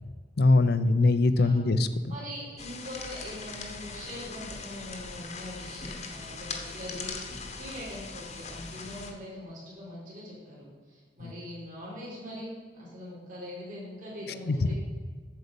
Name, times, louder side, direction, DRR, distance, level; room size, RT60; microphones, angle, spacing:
voice 1, 0.0-1.9 11.2-11.3 14.5-14.7, left 2 dB, 55° left, 12 dB, 0.5 m, -23 dB
voice 2, 0.6-1.0 1.4-1.7 2.1-14.8, equal, 45° right, -6 dB, 3.1 m, -42 dB
sound 1, 2.6-9.1, left 4 dB, 35° left, 1.0 m, -40 dB
8.1 x 7.3 x 5.2 m, 1.5 s
head